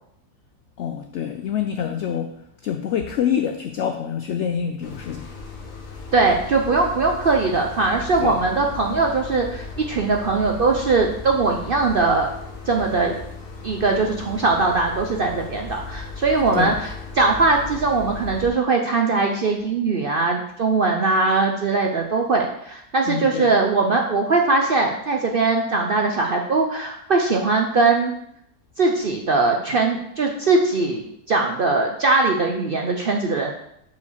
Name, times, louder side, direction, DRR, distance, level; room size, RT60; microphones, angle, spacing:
voice 1, 0.8-2.3 2.6-5.3 8.2-8.4 16.3-16.8 23.0-23.5, left 8 dB, 75° left, 7 dB, 0.6 m, -26 dB
sound 1, 4.8-18.5, left 4 dB, 60° left, 1.4 m, -37 dB
voice 2, 6.1-12.3 12.7-13.2 13.6-28.1 28.8-33.5, right 3 dB, 60° right, 2 dB, 0.5 m, -21 dB
5.3 x 4.9 x 6.5 m, 0.75 s
omnidirectional pair, 1.7 m